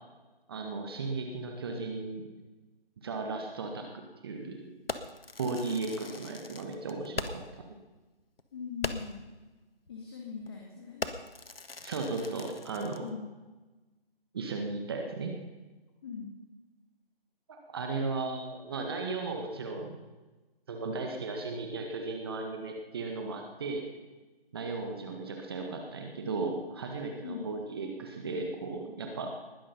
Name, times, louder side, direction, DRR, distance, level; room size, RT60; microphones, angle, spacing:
voice 1, 0.5-2.2 3.0-4.6 5.4-7.6 11.8-13.1 14.3-15.3 17.7-20.0 20.7-23.8 24.5-29.3, right 3 dB, 25° right, 3 dB, 1.6 m, -35 dB
Fireworks, 4.9-7.6 7.9-8.0 8.4-8.5 8.8-9.3 9.9-10.1 10.4-10.6 11.0-13.1, left 3 dB, 70° left, 1.6 m, -40 dB
voice 2, 8.5-9.2 9.9-11.1 13.0-13.3 16.0-16.3 27.2-27.5, left 6 dB, 25° left, -1 dB, 2.0 m, -40 dB
20.5 x 12.0 x 5.5 m, 1.2 s
figure-of-eight pair, 155°, 30 cm